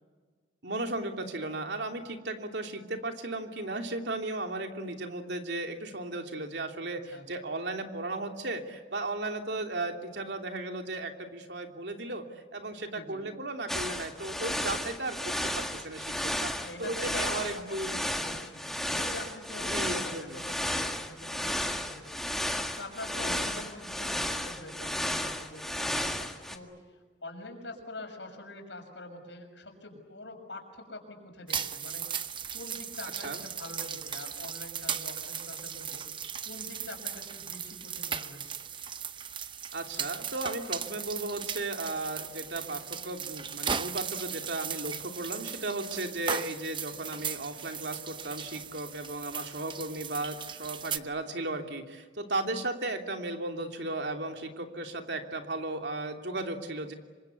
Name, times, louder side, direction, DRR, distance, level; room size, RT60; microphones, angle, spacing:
voice 1, 0.6-12.2 12.5-16.5 16.8-17.9 19.7-20.4 23.2-23.5 33.2-33.4 39.7-56.9, right 2 dB, 70° right, 4 dB, 2.9 m, -35 dB
voice 2, 12.9-13.3 16.6-22.2 22.8-26.7 27.2-32.1 32.5-36.0 36.4-38.6, left 2 dB, 80° left, 4 dB, 6.5 m, -45 dB
sound 1, 13.7-26.6, left 1 dB, ahead, 1.7 m, -33 dB
sound 2, 31.5-51.0, right 7 dB, 25° right, 0.8 m, -37 dB
27.0 x 24.5 x 8.2 m, 1.4 s
head